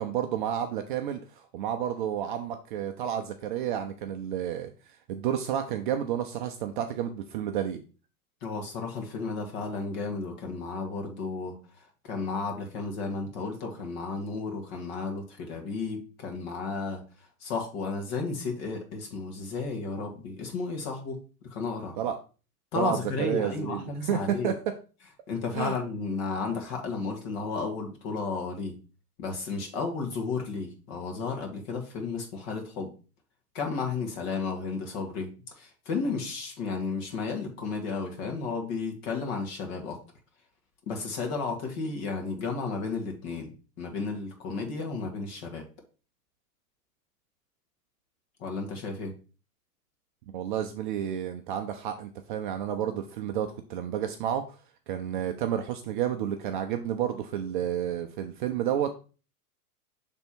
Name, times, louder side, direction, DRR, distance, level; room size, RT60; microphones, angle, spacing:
voice 1, 0.0-4.7 5.1-7.8 22.0-22.2 22.7-24.6 25.5-25.8 50.3-54.6 54.9-58.9, right 10 dB, 35° right, 6 dB, 0.4 m, -30 dB
voice 2, 8.4-17.0 17.4-21.2 21.5-22.0 22.7-24.5 25.3-28.8 29.2-32.9 33.5-35.3 35.6-40.0 40.9-43.5 43.8-45.7 48.4-49.1, left 4 dB, 40° left, 2 dB, 1.9 m, -33 dB
6.4 x 3.5 x 4.4 m, 0.35 s
hypercardioid pair, 135°, 46 cm